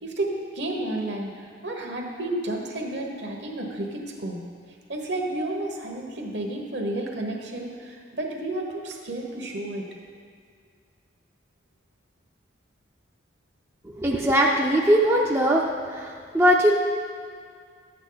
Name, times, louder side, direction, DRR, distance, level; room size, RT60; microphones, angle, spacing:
voice 1, 0.0-4.4 4.9-9.9, right 1 dB, 65° right, 1 dB, 1.3 m, -31 dB
voice 2, 13.9-15.6 15.9-16.8, equal, 10° right, -2 dB, 0.5 m, -20 dB
10.5 x 8.2 x 3.9 m, 2.2 s
head